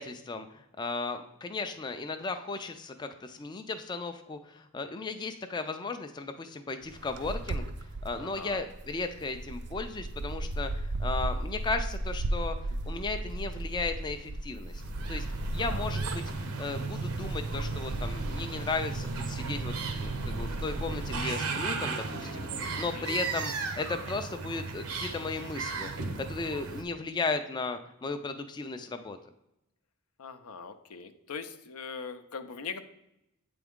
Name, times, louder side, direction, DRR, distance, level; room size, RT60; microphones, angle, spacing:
voice 1, 0.0-7.6 8.0-12.6 12.9-14.7 15.1-15.2 15.5-16.3 16.6-22.4 22.8-25.9 26.2-29.2, left 3 dB, 20° left, 7 dB, 0.3 m, -35 dB
sound 1, 6.8-21.2, right 2 dB, 55° right, 0.4 m, -36 dB
voice 2, 8.2-8.6 15.6-15.9 22.9-23.1 30.2-32.8, left 5 dB, 80° left, 9 dB, 0.5 m, -41 dB
sound 2, 14.7-26.8, right 4 dB, 85° right, 0.8 m, -35 dB
8.4 x 3.5 x 3.6 m, 0.85 s
head